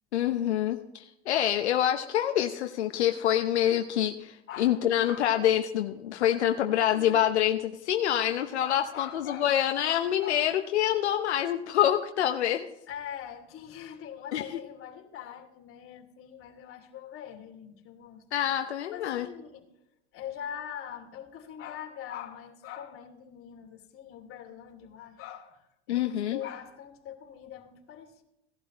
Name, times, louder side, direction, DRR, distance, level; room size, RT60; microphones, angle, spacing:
voice 1, 0.1-12.6 14.3-14.4 18.3-19.3 25.9-26.4, left 11 dB, 85° left, 6 dB, 0.9 m, -26 dB
voice 2, 4.5-5.3 6.9-7.2 8.6-9.5 9.9-10.5 12.9-18.5 18.9-19.7 20.1-28.2, left 9 dB, 40° left, 2 dB, 2.7 m, -43 dB
17.0 x 11.5 x 3.0 m, 0.87 s
hypercardioid pair, 95°, 33 cm